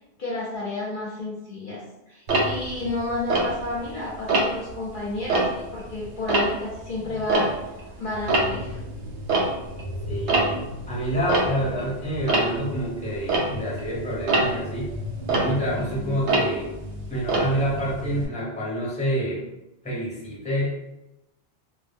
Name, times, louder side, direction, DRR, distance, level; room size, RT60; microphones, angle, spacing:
voice 1, 0.0-1.8 2.1-7.5 8.0-8.8, left 2 dB, 55° left, -5 dB, 0.7 m, -31 dB
Tick-tock, 2.3-3.9 4.3-4.7 5.1-18.3, right 2 dB, 80° right, 0.9 m, -26 dB
voice 2, 10.1-10.6 10.9-14.9 15.3-16.7 17.1-19.5 19.8-20.8, equal, 10° left, -7 dB, 0.6 m, -27 dB
2.2 x 2.0 x 3.4 m, 0.96 s
omnidirectional pair, 1.1 m